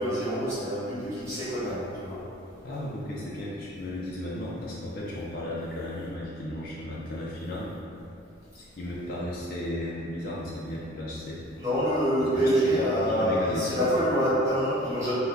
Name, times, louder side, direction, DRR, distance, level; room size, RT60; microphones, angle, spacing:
voice 1, 0.0-2.2 11.6-15.1, equal, 15° right, -13 dB, 1.4 m, -26 dB
voice 2, 2.6-7.7 8.5-11.4 12.2-14.0, left 1 dB, 50° left, -6 dB, 0.6 m, -35 dB
5.5 x 2.3 x 3.8 m, 2.7 s
head